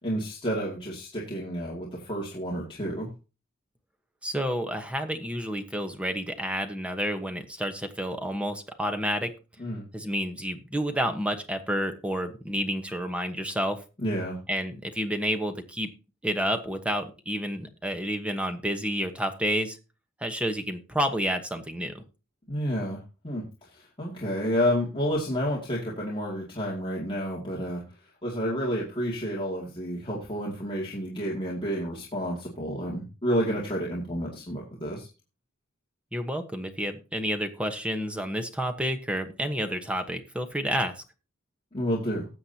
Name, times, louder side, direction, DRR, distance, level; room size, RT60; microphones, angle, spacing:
voice 1, 0.0-3.1 9.6-9.8 14.0-14.4 22.5-27.8 28.2-35.1 41.7-42.3, equal, 25° left, -5 dB, 2.3 m, -30 dB
voice 2, 4.2-9.3 9.9-13.8 14.5-15.9 16.2-19.8 20.2-22.0 36.1-41.0, equal, 5° right, 6 dB, 1.1 m, -30 dB
19.5 x 7.5 x 2.8 m, 0.31 s
head